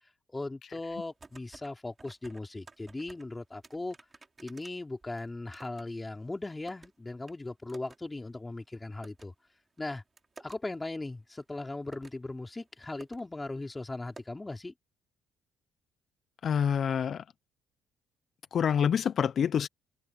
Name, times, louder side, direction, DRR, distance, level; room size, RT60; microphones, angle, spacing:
voice 1, 0.3-4.0 4.4-9.3 9.8-10.0 10.4-14.7, left 2 dB, 15° left, 3.4 m, -38 dB
sound 1, 0.9-1.7 2.0-3.3 3.6-5.9 6.2-6.9 7.3-7.4 7.7-8.0 8.3-8.4 9.0-9.3 9.8-10.6 11.4-11.5 11.8-12.2 12.7-12.8 13.0-13.2 13.5-13.6 14.2-14.3, right 3 dB, 25° right, 3.9 m, -53 dB
voice 2, 16.4-17.2 18.5-19.7, left 8 dB, 55° left, 0.5 m, -27 dB
cardioid pair, 90°, 0 cm